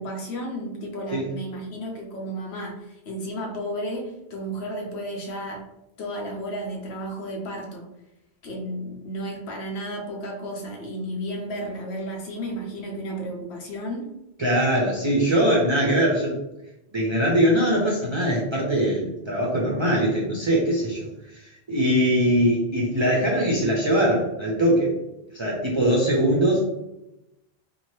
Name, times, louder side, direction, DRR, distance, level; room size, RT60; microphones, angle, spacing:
voice 1, 0.0-5.7 6.0-7.9 8.4-14.1, equal, 80° left, 0 dB, 1.0 m, -33 dB
voice 2, 14.4-16.4 16.9-25.0 25.3-26.7, equal, 40° right, -4 dB, 0.4 m, -22 dB
2.8 x 2.2 x 3.1 m, 0.91 s
omnidirectional pair, 1.1 m